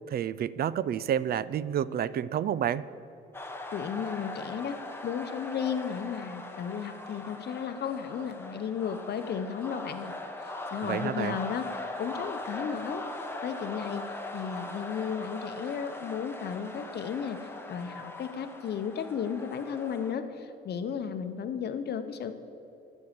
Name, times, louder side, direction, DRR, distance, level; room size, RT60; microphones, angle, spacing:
voice 1, 0.1-2.8 10.8-11.4, right 9 dB, 50° right, 18 dB, 0.4 m, -29 dB
sound 1, 3.3-20.1, left 2 dB, 10° left, 1.1 m, -40 dB
voice 2, 3.7-10.1 10.4-13.0 13.4-14.0 14.3-22.4, left 7 dB, 55° left, 10 dB, 0.8 m, -34 dB
12.0 x 6.3 x 7.3 m, 2.9 s
cardioid pair, 90°, 20 cm